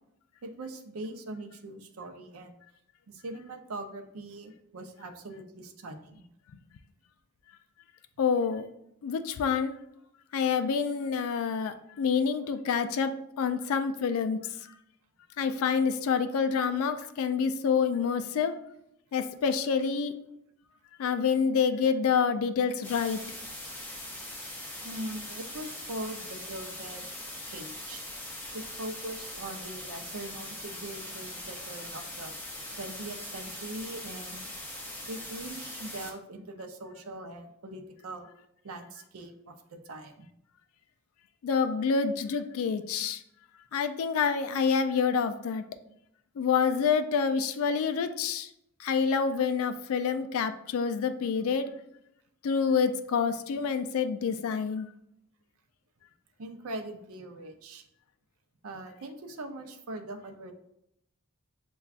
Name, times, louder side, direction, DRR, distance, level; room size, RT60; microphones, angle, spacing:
voice 1, 0.4-2.6 3.1-6.2 24.8-27.1 27.5-28.0 28.5-32.3 32.8-34.4 35.1-38.3 38.6-40.3 56.4-57.9 58.6-60.5, right 1 dB, 70° right, 5 dB, 0.5 m, -41 dB
voice 2, 8.2-8.7 9.0-9.7 10.3-14.4 15.4-18.5 19.1-20.1 21.0-23.2 41.4-43.2 43.7-45.6 46.4-48.5 48.8-51.7 52.4-54.9, left 6 dB, 65° left, 10 dB, 0.3 m, -27 dB
sound 1, 22.8-36.1, left 1 dB, 10° left, 0.5 m, -41 dB
6.8 x 2.3 x 2.4 m, 0.77 s
head